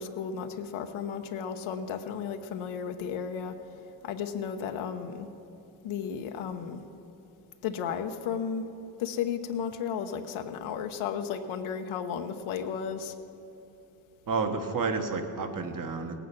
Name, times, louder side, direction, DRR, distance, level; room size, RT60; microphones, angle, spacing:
voice 1, 0.0-5.3 5.8-6.8 7.6-8.7 9.0-13.1, left 7 dB, 80° left, 6 dB, 1.0 m, -34 dB
voice 2, 14.3-16.2, right 4 dB, 40° right, 6 dB, 1.4 m, -30 dB
18.0 x 9.2 x 6.0 m, 2.9 s
cardioid pair, 90°, 48 cm